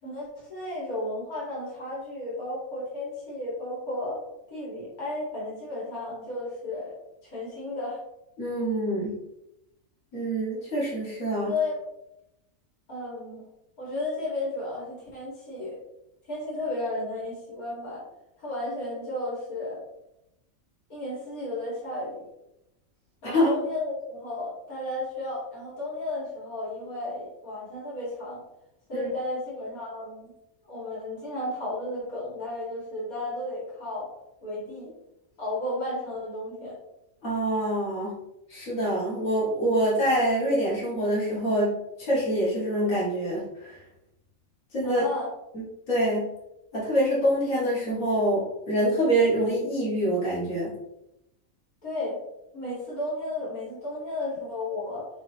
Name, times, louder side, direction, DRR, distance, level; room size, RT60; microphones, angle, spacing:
voice 1, 0.0-4.2 4.5-7.0 7.2-8.0 11.4-11.8 12.9-13.4 13.8-15.8 16.3-18.0 18.4-19.8 20.9-22.3 23.2-28.4 28.9-30.3 30.6-34.1 34.4-34.9 35.4-36.8 44.8-45.3 51.8-52.2 52.5-55.1, left 2 dB, 85° left, -7 dB, 3.1 m, -33 dB
voice 2, 8.4-9.2 10.1-11.5 23.2-23.5 28.9-29.1 37.2-38.2 38.5-43.8 44.7-45.0 45.5-46.3 46.7-50.7, right 1 dB, 65° left, -8 dB, 3.0 m, -25 dB
9.7 x 3.7 x 3.2 m, 0.85 s
omnidirectional pair, 1.5 m